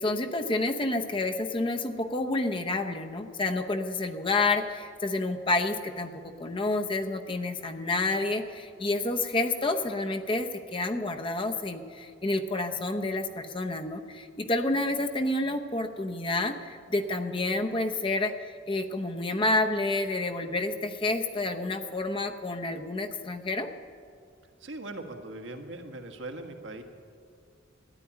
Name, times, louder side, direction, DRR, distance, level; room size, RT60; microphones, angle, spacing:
voice 1, 0.0-23.7, left 2 dB, 25° left, 5 dB, 0.8 m, -29 dB
voice 2, 24.6-26.8, right 2 dB, 75° right, 4 dB, 1.5 m, -40 dB
13.0 x 9.9 x 9.9 m, 2.3 s
head